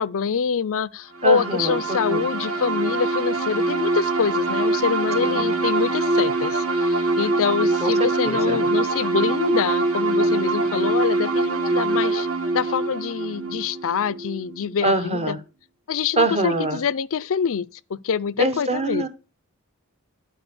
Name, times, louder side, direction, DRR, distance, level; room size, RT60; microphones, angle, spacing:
voice 1, 0.0-12.3 12.5-15.4 15.9-17.7 17.9-19.1, left 6 dB, 65° left, 0.5 m, -25 dB
voice 2, 1.2-2.2 5.2-5.4 7.8-7.9 8.2-8.6 14.8-15.4 16.2-16.8 18.4-19.1, right 2 dB, 30° right, 1.1 m, -24 dB
sound 1, 1.2-14.7, right 2 dB, 70° right, 3.0 m, -23 dB
11.5 x 4.5 x 6.9 m
head